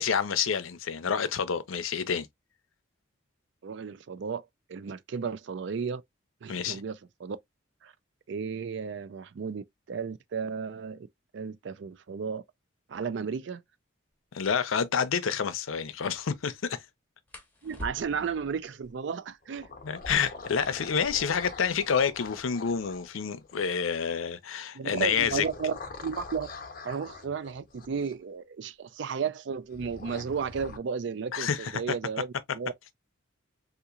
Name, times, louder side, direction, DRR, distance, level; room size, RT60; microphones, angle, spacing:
voice 1, 0.0-2.3 6.5-6.8 14.3-16.8 19.8-25.4 31.3-31.7, left 6 dB, 90° left, 0.6 m, -28 dB
voice 2, 3.6-6.0 6.4-7.4 7.8-7.9 8.3-11.1 11.3-12.4 12.9-13.6 17.6-19.7 24.7-26.5 26.8-32.7, right 6 dB, 60° right, 0.4 m, -34 dB
sound 1, 14.1-14.2 14.6-14.8 17.3-18.4 19.8-21.5 21.8-21.9 22.1-22.7 23.3-25.9 26.9-27.2 27.6-28.1 28.4-29.1, left 1 dB, 10° left, 1.0 m, -47 dB
sound 2, 17.9-18.9 19.4-23.7 24.9-28.1 29.7-30.8, left 4 dB, 45° left, 0.8 m, -45 dB
3.7 x 2.9 x 2.4 m
head